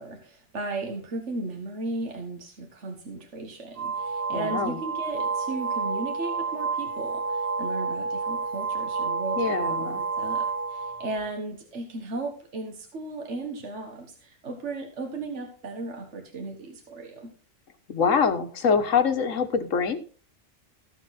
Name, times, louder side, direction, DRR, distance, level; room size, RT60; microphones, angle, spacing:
voice 1, 0.0-9.9 10.2-17.3, right 2 dB, 65° right, 3 dB, 1.9 m, -36 dB
sound 1, 3.8-11.3, right 4 dB, 35° right, 1.0 m, -30 dB
voice 2, 4.3-4.8 9.4-10.0 17.9-20.0, left 6 dB, 85° left, 8 dB, 1.6 m, -24 dB
14.5 x 7.3 x 4.2 m, 0.42 s
omnidirectional pair, 1.3 m